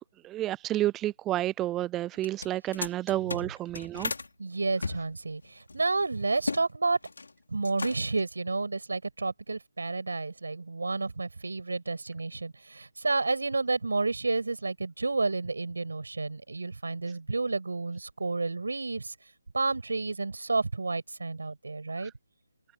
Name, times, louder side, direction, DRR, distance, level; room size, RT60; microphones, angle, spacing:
voice 1, 0.2-4.1, right 14 dB, 10° right, 0.3 m, -30 dB
sound 1, 2.1-4.3 4.8-6.7 6.9-7.3 7.6-8.2, left 3 dB, 80° left, 5.0 m, -36 dB
voice 2, 4.4-7.0 7.5-19.1 19.5-22.1, right 3 dB, 85° right, 7.0 m, -30 dB
hypercardioid pair, 170°, 0 cm